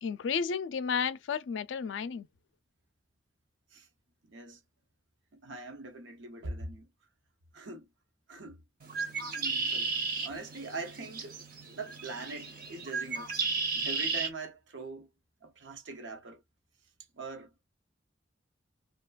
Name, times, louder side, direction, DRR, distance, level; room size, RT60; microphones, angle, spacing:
voice 1, 0.0-2.3, left 6 dB, 80° left, 0.4 m, -32 dB
voice 2, 4.2-4.6 5.3-6.9 7.5-7.9 8.3-8.6 9.3-9.9 10.2-11.4 11.8-13.3 13.7-15.1 15.4-16.4 17.2-17.5, right 3 dB, 80° right, 0.7 m, -42 dB
Bird, 8.8-14.3, right 4 dB, 50° right, 0.7 m, -34 dB
2.8 x 2.3 x 2.3 m
head